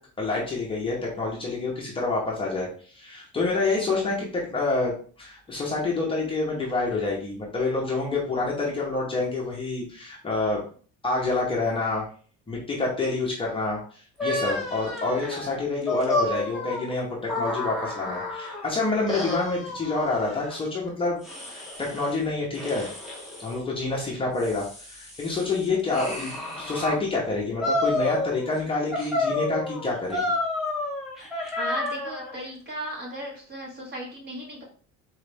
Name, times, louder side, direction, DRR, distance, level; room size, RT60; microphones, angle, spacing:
voice 1, 0.2-4.9 5.2-10.6 11.0-12.1 12.5-13.8 14.2-22.9 23.4-30.2, left 3 dB, 15° left, -4 dB, 0.8 m, -27 dB
sound 1, 14.2-18.7 19.1-20.6 21.2-22.1 22.5-23.5 24.1-27.0 27.6-28.6 28.9-32.4, left 2 dB, ahead, 1.0 m, -30 dB
voice 2, 31.6-34.6, right 1 dB, 35° right, -1 dB, 1.4 m, -36 dB
4.0 x 3.2 x 3.3 m, 0.43 s
cardioid pair, 175°, 31 cm